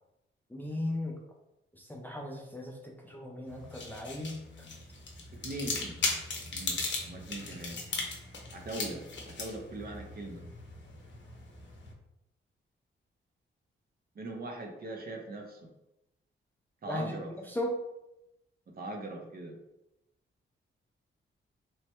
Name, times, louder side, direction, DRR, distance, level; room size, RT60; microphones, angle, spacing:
voice 1, 0.5-1.2 1.8-4.3 16.9-17.0 17.5-17.7, left 1 dB, 10° left, -1 dB, 0.4 m, -36 dB
sound 1, 3.5-11.9, left 3 dB, 60° left, 0.7 m, -38 dB
voice 2, 5.3-6.0 6.5-6.8 7.1-7.8 8.5-10.4 14.2-15.7 16.8-17.3 18.7-19.6, right 2 dB, 45° right, 2 dB, 0.6 m, -40 dB
3.1 x 2.2 x 2.9 m, 0.90 s
cardioid pair, 105°, 21 cm